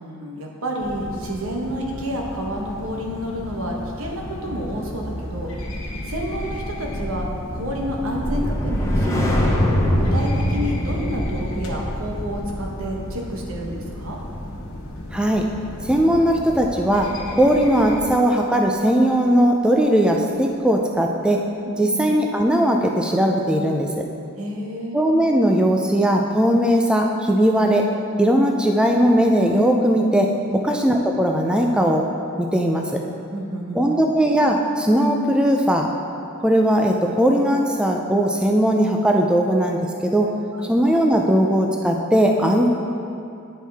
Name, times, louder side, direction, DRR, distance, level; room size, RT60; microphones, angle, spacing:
voice 1, 0.0-5.5 6.1-9.6 10.0-14.2 21.6-22.0 24.4-25.0 30.5-30.7 33.3-34.0 40.5-40.7, equal, 80° right, -1 dB, 1.0 m, -30 dB
sound 1, 0.8-18.0, left 1 dB, 80° left, 0.9 m, -35 dB
sound 2, 5.6-15.9 16.2-16.5, equal, 15° left, 0.8 m, -25 dB
voice 2, 15.1-15.5 15.8-17.1 17.4-21.4 21.8-23.9 24.9-27.8 28.2-30.3 30.6-32.1 32.4-33.0 33.8-35.9 36.4-40.3 40.7-42.7, equal, 5° right, 1 dB, 0.3 m, -18 dB
9.7 x 4.5 x 3.4 m, 2.6 s
head